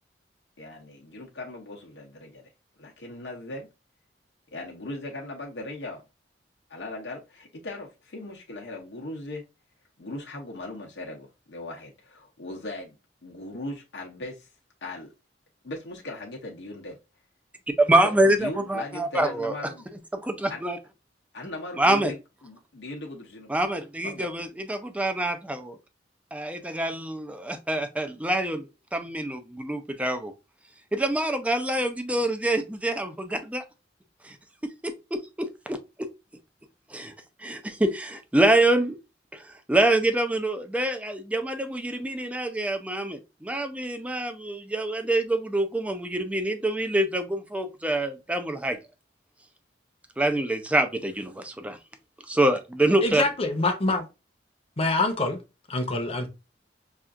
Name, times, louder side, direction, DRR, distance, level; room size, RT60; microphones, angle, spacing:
voice 1, 0.6-2.5 2.8-3.7 4.5-6.1 6.7-9.4 10.0-12.9 13.2-14.5 14.8-15.1 15.6-17.0 17.9-19.8 20.5-20.6 21.3-23.5 24.0-24.3, left 2 dB, 75° left, 0.7 m, -38 dB
voice 2, 17.8-19.5 20.1-20.8 21.8-22.1 23.5-25.8 26.3-30.3 30.9-33.6 34.2-34.4 34.6-36.1 36.9-37.1 37.4-39.0 39.3-39.4 39.7-48.8 50.2-51.8 52.3-53.2, right 1 dB, 10° right, 0.4 m, -26 dB
voice 3, 53.0-54.1 54.8-55.4 55.7-56.3, left 2 dB, 35° left, 0.8 m, -25 dB
5.6 x 2.4 x 2.4 m
head